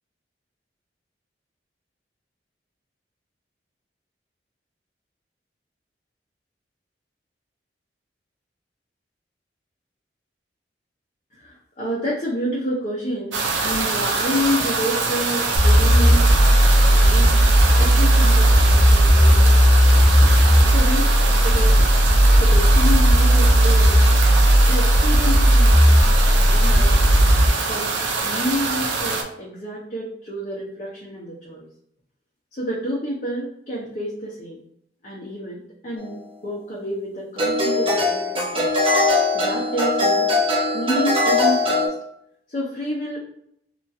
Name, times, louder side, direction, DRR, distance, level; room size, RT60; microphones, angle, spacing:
voice 1, 11.3-16.4 16.8-17.4 17.8-20.1 20.7-21.9 22.4-24.0 24.7-27.2 27.7-27.9 28.2-31.6 32.5-34.6 35.0-36.2 36.4-38.7 39.3-40.3 40.7-41.9 42.5-43.2, equal, 40° left, -6 dB, 0.6 m, -29 dB
sound 1, 13.3-29.2, right 4 dB, 90° right, 0.5 m, -24 dB
sound 2, 15.6-27.5, equal, 80° left, 0.9 m, -15 dB
sound 3, 36.0-36.1 37.4-41.9, left 2 dB, 30° right, 0.5 m, -20 dB
2.9 x 2.3 x 2.6 m, 0.71 s
head